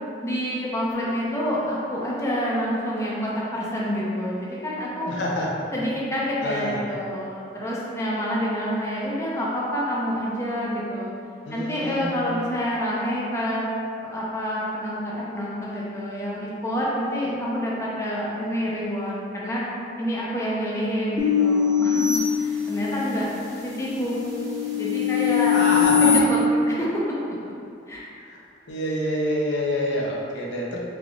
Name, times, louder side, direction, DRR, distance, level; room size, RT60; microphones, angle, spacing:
voice 1, 0.2-5.1 5.7-11.1 11.5-13.7 14.1-19.6 20.0-23.3 23.6-24.3 24.5-25.6 26.0-26.9 27.2-27.3 27.9-28.1, equal, 15° left, -6 dB, 0.5 m, -27 dB
voice 2, 5.1-5.5 6.4-6.8 11.4-12.2 25.5-26.1 28.3-28.4 28.7-30.8, left 1 dB, 70° left, -3 dB, 0.6 m, -27 dB
sound 1, 21.2-23.1 23.7-26.2, left 8 dB, 20° right, 0.8 m, -22 dB
3.7 x 3.4 x 2.3 m, 2.5 s
head